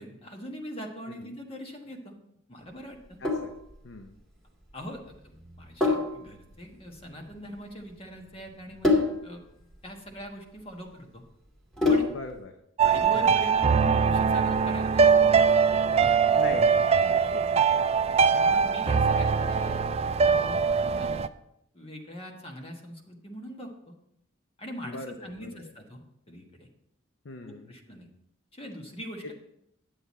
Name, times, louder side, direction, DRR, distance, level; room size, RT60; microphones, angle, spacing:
voice 1, 0.0-2.2 2.5-3.2 4.7-9.4 9.8-11.2 11.9-12.1 12.8-15.4 15.9-16.3 18.0-19.9 20.2-20.6 20.9-21.3 21.7-23.9 24.6-26.0 26.3-26.7 27.4-28.1 28.5-29.3, equal, 30° left, 2 dB, 1.3 m, -42 dB
Sink (filling or washing), 2.9-12.4, left 3 dB, 5° left, 1.8 m, -30 dB
voice 2, 3.2-3.5 3.8-4.1 12.1-12.6 16.3-17.9 24.8-25.6 27.2-27.7, left 3 dB, 65° left, 6 dB, 0.7 m, -40 dB
sound 1, 12.8-21.3, right 6 dB, 30° right, 0.3 m, -22 dB
10.0 x 7.8 x 4.2 m, 0.78 s
head